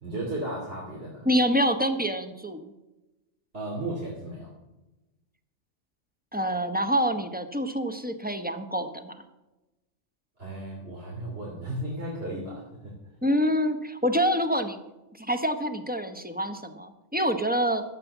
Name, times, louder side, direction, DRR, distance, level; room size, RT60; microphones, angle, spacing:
voice 1, 0.0-1.3 3.5-4.5 10.4-12.9, right 1 dB, 50° right, -5 dB, 3.2 m, -35 dB
voice 2, 1.2-2.6 6.3-9.2 13.2-14.8 15.2-17.8, equal, 10° right, 7 dB, 0.9 m, -26 dB
13.0 x 7.7 x 7.2 m, 1.0 s
omnidirectional pair, 1.3 m